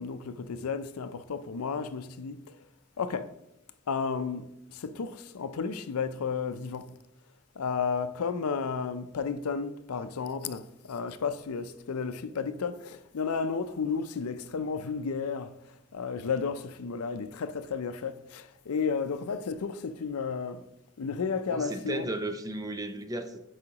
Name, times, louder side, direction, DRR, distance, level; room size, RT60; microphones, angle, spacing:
voice 1, 0.0-2.4 3.0-3.3 3.9-6.9 7.6-15.5 15.9-20.6 21.0-22.1, left 5 dB, 90° left, 0.5 m, -32 dB
voice 2, 21.5-23.4, right 1 dB, 15° right, 0.5 m, -34 dB
9.7 x 4.9 x 2.9 m
head